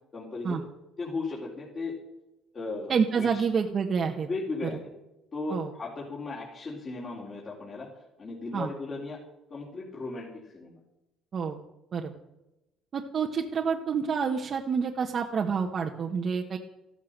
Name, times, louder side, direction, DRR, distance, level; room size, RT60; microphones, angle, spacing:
voice 1, 0.1-0.6 1.0-1.9 2.5-3.5 4.2-4.8 5.3-7.9 8.2-9.2 9.5-10.8, left 3 dB, 35° left, -5 dB, 4.0 m, -36 dB
voice 2, 2.9-4.3 5.5-5.7 8.5-8.7 11.3-11.6 11.9-12.1 12.9-16.6, right 6 dB, 45° right, 1 dB, 1.4 m, -28 dB
14.5 x 13.5 x 6.7 m, 0.95 s
cardioid pair, 120°, 0 cm